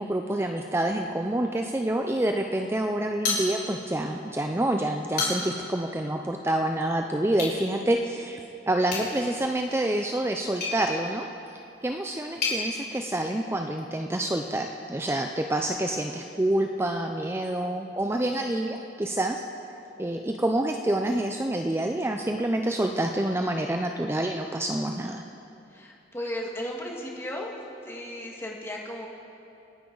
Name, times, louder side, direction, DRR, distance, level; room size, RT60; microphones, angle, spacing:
voice 1, 0.0-8.4 8.7-11.3 11.8-19.4 20.0-25.2, right 1 dB, 15° right, 3 dB, 0.5 m, -27 dB
sound 1, 3.2-4.0 4.3-4.4 4.9-5.7 7.3-7.6 8.8-12.6, left 3 dB, 55° left, 4.4 m, -32 dB
voice 2, 25.7-27.5 27.8-29.1, left 1 dB, 15° left, -1 dB, 1.8 m, -35 dB
28.5 x 10.0 x 3.9 m, 2.7 s
head